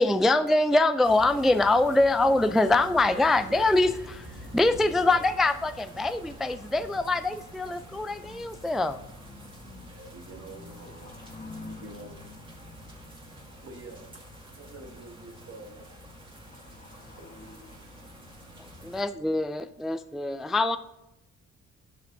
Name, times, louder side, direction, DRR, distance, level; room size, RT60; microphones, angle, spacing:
voice 1, 0.0-9.0 18.6-20.8, left 2 dB, ahead, 11 dB, 0.3 m, -24 dB
sound 1, 1.0-19.0, equal, 15° right, 2.2 m, -47 dB
voice 2, 2.6-3.7 4.4-5.3 9.8-11.3 11.7-12.2 13.2-15.9 17.2-17.3, right 2 dB, 50° right, 2 dB, 1.4 m, -47 dB
voice 3, 7.8-8.7 9.3-10.3 10.6-12.1 12.6-13.5 16.4-18.1, left 3 dB, 25° left, 1 dB, 1.4 m, -48 dB
11.0 x 6.6 x 2.7 m, 0.93 s
cardioid pair, 90°, 30 cm